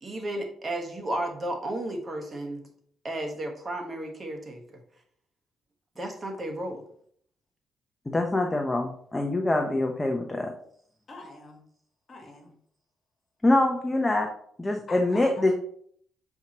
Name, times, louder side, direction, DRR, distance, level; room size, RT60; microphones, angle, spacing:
voice 1, 0.0-2.6 3.0-4.8 6.0-6.8, right 1 dB, 35° right, 3 dB, 1.2 m, -33 dB
voice 2, 8.1-10.5 13.4-14.3 14.6-15.5, left 2 dB, 15° left, 2 dB, 0.7 m, -24 dB
voice 3, 11.1-11.6 12.1-12.6 14.9-15.5, left 3 dB, 40° left, 1 dB, 1.7 m, -45 dB
7.1 x 4.6 x 2.9 m, 0.62 s
cardioid pair, 90°, 0 cm